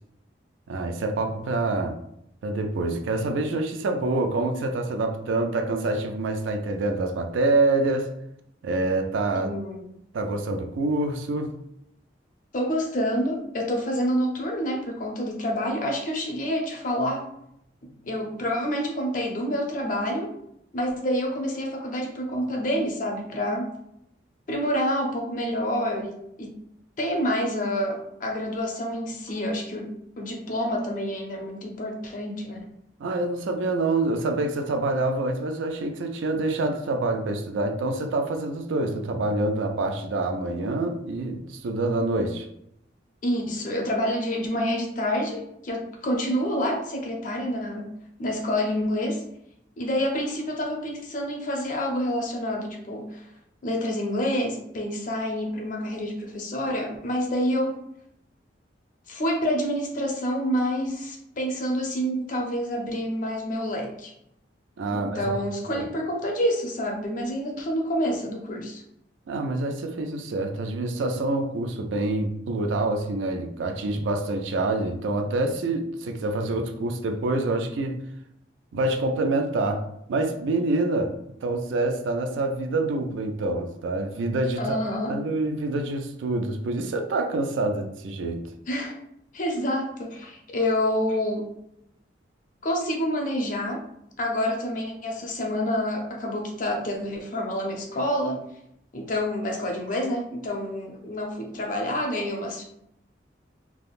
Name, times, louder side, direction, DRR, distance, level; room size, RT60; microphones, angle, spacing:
voice 1, 0.7-2.0 2.4-8.1 8.6-9.5 10.1-11.5 33.0-42.5 64.8-65.2 65.7-65.8 69.3-78.0 78.7-79.8 80.1-81.1 81.4-84.8 85.1-88.4, right 2 dB, 85° right, 5 dB, 0.4 m, -26 dB
voice 2, 9.3-9.9 12.5-17.3 17.8-20.4 20.7-23.7 24.5-26.6 27.0-32.7 43.2-47.9 48.2-49.2 49.8-53.2 53.6-57.8 59.1-64.1 64.9-68.8 84.6-85.2 88.7-89.0 89.3-91.5 92.6-93.8 94.2-98.4 98.9-102.6, equal, 45° left, 1 dB, 0.5 m, -28 dB
3.4 x 2.0 x 2.4 m, 0.76 s
head